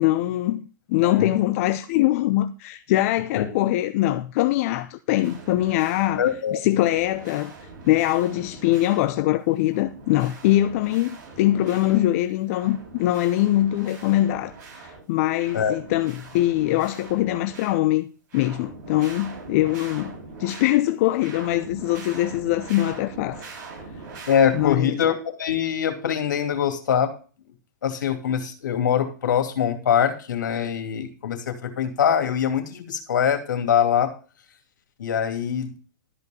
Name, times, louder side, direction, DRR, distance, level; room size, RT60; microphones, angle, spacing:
voice 1, 0.0-6.2 6.5-7.5 7.9-18.1 18.3-23.4 24.5-25.0, left 15 dB, 45° left, 0.7 m, -23 dB
sound 1, 5.2-6.4 6.7-9.4 9.7-12.2 12.4-15.0 15.4-18.0 18.3-20.8 21.1-24.8, right 4 dB, 50° right, 6.9 m, -42 dB
voice 2, 6.2-6.6 15.5-15.8 24.3-27.1 27.8-34.1 35.0-35.7, left 8 dB, 70° left, 2.7 m, -23 dB
13.0 x 5.4 x 5.3 m
hypercardioid pair, 120°, 10 cm